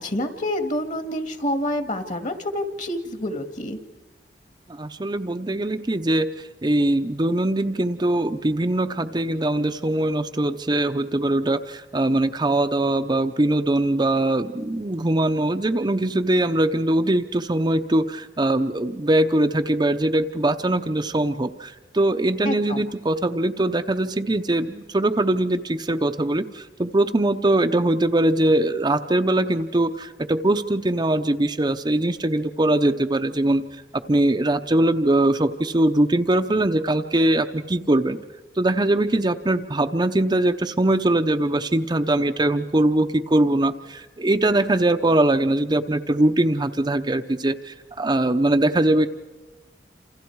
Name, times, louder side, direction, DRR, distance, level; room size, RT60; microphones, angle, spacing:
voice 1, 0.0-3.8 22.4-22.9, left 1 dB, 45° left, 8 dB, 1.9 m, -28 dB
voice 2, 4.7-6.3 6.6-33.6 34.1-38.2 38.6-49.1, right 1 dB, 25° right, 7 dB, 0.7 m, -21 dB
28.0 x 28.0 x 4.7 m, 1.2 s
head